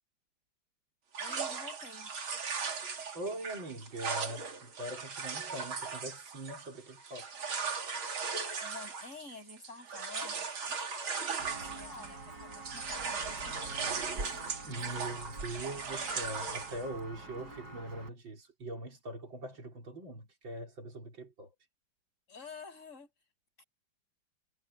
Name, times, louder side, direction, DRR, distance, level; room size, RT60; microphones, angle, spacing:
sound 1, 1.1-12.2 12.5-16.8, right 5 dB, 85° right, 3.4 m, -38 dB
voice 1, 1.2-2.1 7.3-7.4 8.6-14.3 16.2-16.3 17.2-17.6 22.3-23.1 23.6-23.7, left 4 dB, 35° left, 8.1 m, -50 dB
voice 2, 3.1-7.5 14.7-21.5, right 1 dB, 70° right, 5.2 m, -42 dB
Walk footsteps, 11.4-18.1, right 2 dB, 50° right, 5.8 m, -45 dB
omnidirectional pair, 2.2 m